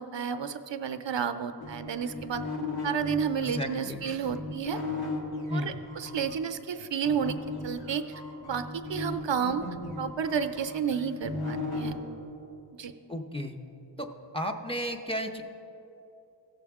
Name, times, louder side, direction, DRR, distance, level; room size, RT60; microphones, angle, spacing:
voice 1, 0.0-2.4 2.8-4.8 5.5-7.4 7.6-8.0 8.4-9.6 10.0-11.9 12.8-12.9, right 7 dB, 70° right, 9 dB, 0.5 m, -31 dB
sound 1, 1.6-6.3 7.0-11.9, left 3 dB, 55° left, 1.6 m, -36 dB
voice 2, 3.4-4.0 5.5-5.7 13.1-13.6 14.0-14.1 14.3-15.4, equal, 10° left, 4 dB, 0.6 m, -33 dB
16.0 x 7.0 x 3.5 m, 3.0 s
wide cardioid pair, 65°, 46 cm